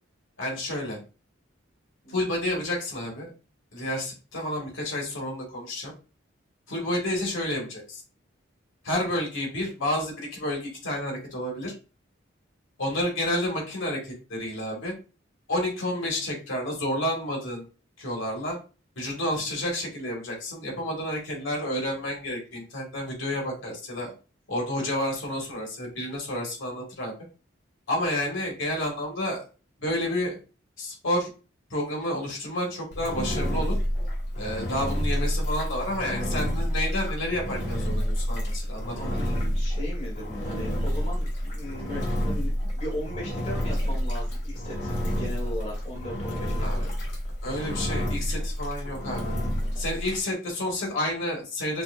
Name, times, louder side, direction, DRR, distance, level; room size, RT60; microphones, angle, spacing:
voice 1, 0.4-1.0 2.1-3.3 3.7-5.9 6.7-8.0 8.8-11.7 12.8-14.9 15.5-17.6 18.0-18.6 19.0-24.1 24.5-27.1 27.9-29.4 29.8-30.4 30.8-31.3 31.7-33.7 34.4-38.9 46.6-46.9 47.4-49.3 49.8-51.8, left 1 dB, 80° left, -1 dB, 2.0 m, -30 dB
Engine, 32.9-50.2, equal, 55° left, 2.1 m, -29 dB
voice 2, 38.9-46.9 47.5-47.7, equal, 35° left, -3 dB, 1.4 m, -38 dB
6.0 x 2.7 x 2.5 m, 0.33 s
head